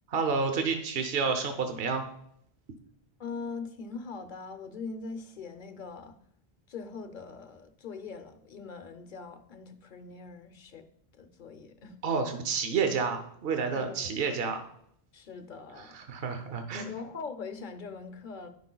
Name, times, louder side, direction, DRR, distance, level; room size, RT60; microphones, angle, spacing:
voice 1, 0.1-2.0 12.0-14.6 15.8-17.0, right 5 dB, 65° right, 6 dB, 1.0 m, -30 dB
voice 2, 3.2-6.2 6.7-10.8 11.1-12.0 13.7-14.1 15.1-16.0 16.7-18.5, left 4 dB, 55° left, 8 dB, 0.8 m, -42 dB
14.5 x 5.2 x 2.3 m, 0.72 s
omnidirectional pair, 1.1 m